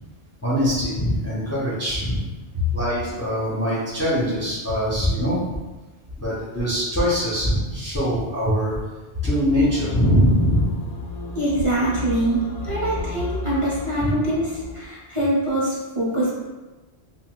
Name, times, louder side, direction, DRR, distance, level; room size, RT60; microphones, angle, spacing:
voice 1, 0.4-2.2 2.7-5.4 6.2-8.8 9.2-10.8 14.0-14.1, equal, 20° left, -7 dB, 0.5 m, -22 dB
sound 1, 9.5-14.8, left 2 dB, 90° left, 0.9 m, -32 dB
voice 2, 11.3-16.3, right 1 dB, 35° right, -8 dB, 0.6 m, -24 dB
2.7 x 2.2 x 3.6 m, 1.2 s
omnidirectional pair, 1.1 m